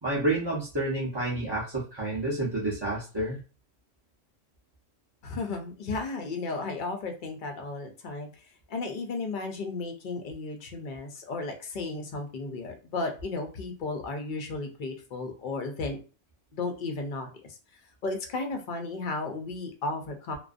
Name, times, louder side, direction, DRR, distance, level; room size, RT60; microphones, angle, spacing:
voice 1, 0.0-3.4, right 2 dB, 35° right, -6 dB, 0.4 m, -29 dB
voice 2, 5.2-16.0 16.5-17.6 18.0-20.4, left 3 dB, 60° left, 4 dB, 0.5 m, -34 dB
2.4 x 2.1 x 2.4 m, 0.35 s
omnidirectional pair, 1.4 m